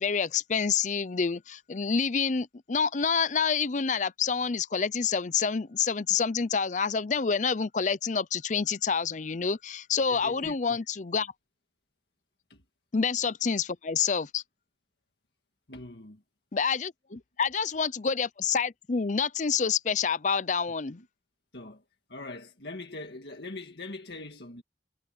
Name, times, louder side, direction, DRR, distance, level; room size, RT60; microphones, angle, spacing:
voice 1, 0.0-11.3 12.9-14.4 16.5-16.9 17.4-21.0, left 6 dB, 45° left, 0.6 m, -28 dB
voice 2, 10.1-10.8 12.5-12.7 15.7-16.2 21.0-21.1 21.5-24.6, left 2 dB, 65° left, 1.9 m, -42 dB
head